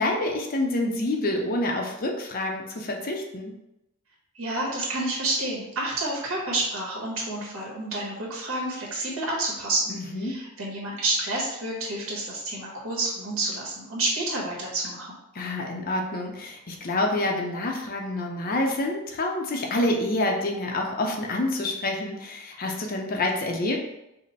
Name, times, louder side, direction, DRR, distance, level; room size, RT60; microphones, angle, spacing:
voice 1, 0.0-3.5 9.9-10.4 15.3-23.8, left 1 dB, 40° left, 1 dB, 0.6 m, -27 dB
voice 2, 4.3-15.2, right 2 dB, 70° right, -4 dB, 1.4 m, -29 dB
5.2 x 2.1 x 4.1 m, 0.89 s
head